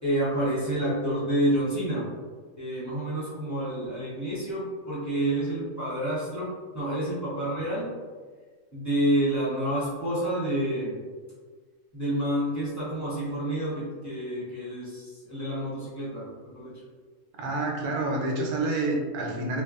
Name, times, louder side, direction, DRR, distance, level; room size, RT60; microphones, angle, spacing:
voice 1, 0.0-2.1 2.6-7.9 8.7-11.0 11.9-16.8, right 1 dB, 20° left, -9 dB, 0.5 m, -29 dB
voice 2, 17.4-19.6, right 2 dB, 80° right, -1 dB, 1.1 m, -28 dB
3.2 x 2.2 x 2.3 m, 1.5 s
omnidirectional pair, 1.6 m